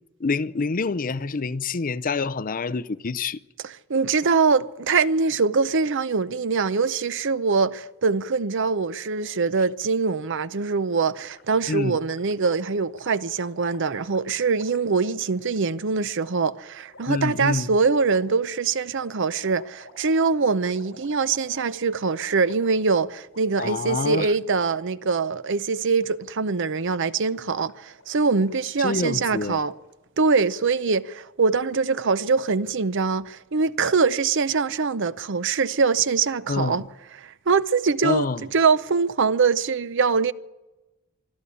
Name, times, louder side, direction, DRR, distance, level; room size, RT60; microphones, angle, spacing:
voice 1, 0.2-3.4 11.7-12.0 17.1-17.7 23.6-24.3 28.8-29.6 36.5-36.8 38.0-38.4, left 4 dB, 40° left, 0.6 m, -26 dB
voice 2, 3.6-29.7 30.2-36.9 37.2-38.3 38.5-40.3, right 4 dB, 60° right, 0.7 m, -23 dB
Gurgling, 10.9-15.6 16.2-16.3 16.9-17.3 18.0-23.0 23.2-23.4 23.7-24.9 25.1-25.3 25.7-26.2 26.5-29.9, left 2 dB, 60° left, 5.2 m, -52 dB
25.0 x 12.5 x 8.5 m
head